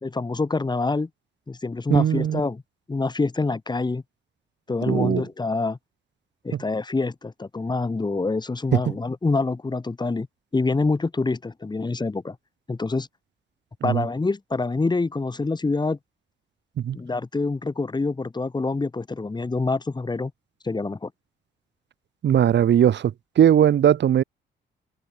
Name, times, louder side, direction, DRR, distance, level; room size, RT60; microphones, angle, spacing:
voice 1, 0.0-1.1 1.5-2.6 2.9-4.0 4.7-5.8 6.4-10.3 10.5-12.4 12.7-13.1 13.8-16.0 16.9-20.3 20.6-21.1, left 3 dB, 20° left, 2.3 m, -26 dB
voice 2, 1.9-2.4 4.9-5.2 8.7-8.8 13.8-14.0 16.8-17.0 22.2-24.2, right 10 dB, 60° right, 3.4 m, -19 dB
cardioid pair, 90°, 20 cm